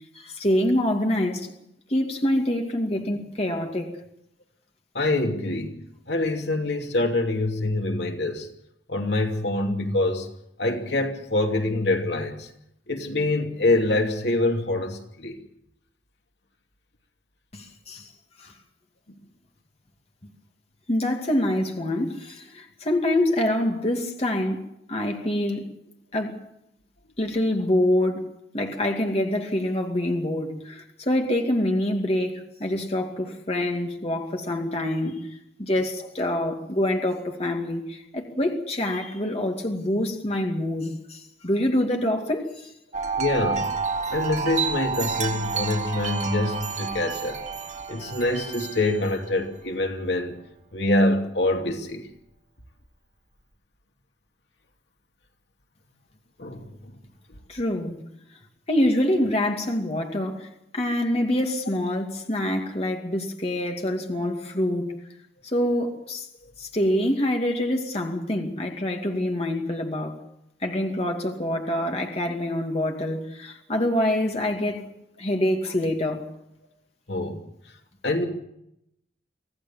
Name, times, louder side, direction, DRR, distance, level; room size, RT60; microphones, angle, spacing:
voice 1, 0.1-1.5 1.9-3.9 17.5-18.1 18.4-18.5 20.9-25.7 26.1-26.4 27.2-28.3 28.5-35.3 35.6-42.7 57.5-58.0 58.7-64.9 65.4-66.3 66.6-70.2 70.6-74.9 75.2-76.3, left 1 dB, 35° left, 2.4 m, -26 dB
voice 2, 4.9-8.5 8.9-10.3 10.6-12.5 12.9-15.4 32.7-32.9 43.2-43.7 44.1-47.4 47.9-50.4 50.7-52.0 56.4-56.9 77.1-77.4 78.0-78.3, left 2 dB, 70° left, 2.7 m, -25 dB
Wind chime, 42.9-49.4, right 5 dB, 40° right, 2.4 m, -30 dB
25.5 x 16.5 x 7.4 m
head